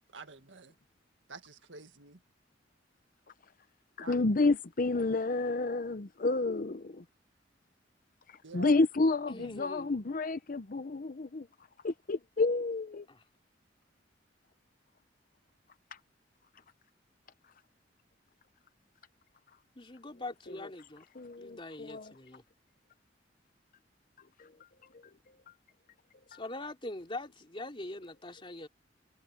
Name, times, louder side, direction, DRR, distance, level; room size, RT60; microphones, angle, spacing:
voice 1, 0.1-0.7 1.3-2.2 4.0-4.2 8.4-8.7 9.4-9.6, right 3 dB, 85° right, 1.9 m, -48 dB
voice 2, 4.0-7.0 8.5-11.5 11.8-13.1 21.2-22.1 24.4-24.5 26.3-26.4, left 3 dB, 45° left, 0.7 m, -30 dB
voice 3, 9.3-10.0 13.1-13.2 19.7-21.1 21.4-22.4 26.3-28.7, left 2 dB, 30° left, 3.1 m, -43 dB
head